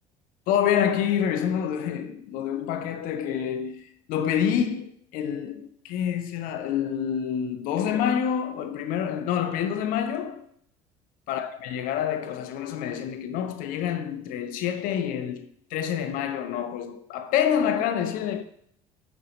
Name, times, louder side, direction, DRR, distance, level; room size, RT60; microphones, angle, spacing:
voice 1, 0.5-10.5 11.3-18.4, left 9 dB, 60° left, 0.7 m, -27 dB
8.7 x 4.6 x 4.1 m
figure-of-eight pair, 55°, 16 cm